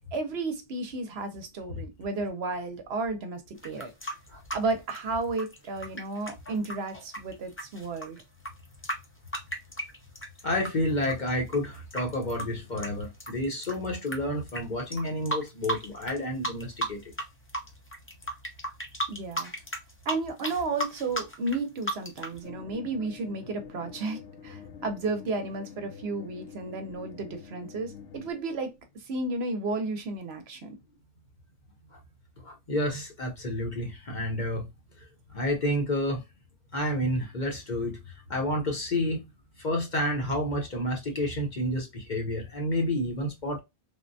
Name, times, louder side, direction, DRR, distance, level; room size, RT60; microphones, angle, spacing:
voice 1, 0.1-3.9 4.5-8.2 19.1-19.5 20.1-30.8, right 3 dB, 65° right, 0.9 m, -33 dB
sound 1, 3.6-10.7 11.0-14.2 14.5-14.6 14.9-16.2 16.4-17.2 17.5-22.4, right 1 dB, 15° left, 0.5 m, -34 dB
voice 2, 10.4-17.0 32.4-34.7 35.3-36.2 36.7-38.0 38.3-39.2 39.6-43.6, left 1 dB, 45° left, 0.8 m, -30 dB
sound 2, 22.4-28.3, left 7 dB, 75° left, 1.0 m, -47 dB
3.5 x 2.1 x 2.5 m
omnidirectional pair, 1.2 m